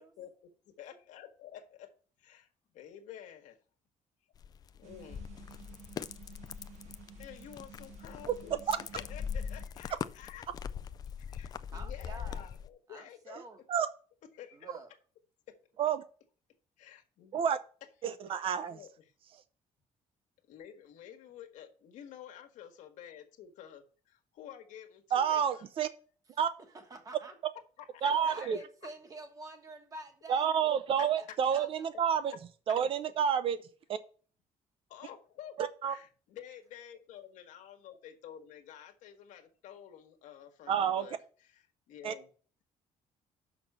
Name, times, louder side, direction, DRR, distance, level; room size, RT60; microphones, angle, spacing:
voice 1, 0.0-1.9 2.2-2.5 2.7-3.6 4.7-5.2 7.1-10.5 11.2-13.4 14.3-14.7 15.5-15.6 16.8-17.4 18.3-19.0 20.4-25.6 27.8-28.6 30.6-30.7 31.3-31.4 34.9-42.3, left 10 dB, 85° left, 1.4 m, -51 dB
sound 1, 4.4-12.7, left 7 dB, 30° left, 0.3 m, -41 dB
sound 2, 4.8-9.6, right 10 dB, 65° right, 1.1 m, -54 dB
voice 2, 11.7-12.5 12.9-13.6 14.5-14.9 26.6-27.3 28.3-30.5 31.0-31.9, right 2 dB, 30° right, 1.3 m, -48 dB
voice 3, 18.0-18.8 25.1-25.9 26.4-26.5 28.0-28.6 30.3-32.3 32.7-33.6 35.6-35.9 40.7-41.1 42.0-42.1, right 8 dB, 45° right, 0.7 m, -29 dB
6.1 x 5.9 x 6.7 m
cardioid pair, 175°, 13 cm